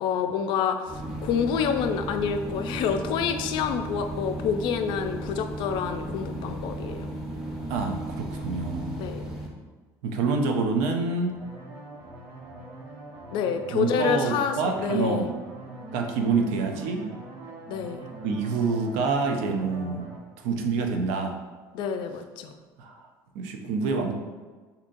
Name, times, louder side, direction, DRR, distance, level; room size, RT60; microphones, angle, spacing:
voice 1, 0.0-7.1 9.0-9.2 13.3-15.3 17.7-18.1 21.7-22.5, left 7 dB, 65° left, 7 dB, 0.3 m, -28 dB
sound 1, 0.9-9.5, right 1 dB, 5° right, 0.8 m, -35 dB
voice 2, 7.7-9.0 10.0-11.3 13.7-15.3 15.9-17.0 18.2-20.1 20.4-21.3 22.8-23.1 23.3-24.1, right 4 dB, 80° right, 3 dB, 0.5 m, -27 dB
sound 2, 11.2-20.2, right 2 dB, 65° right, 0.8 m, -43 dB
3.7 x 2.7 x 2.5 m, 1.4 s
supercardioid pair, 95°, 9 cm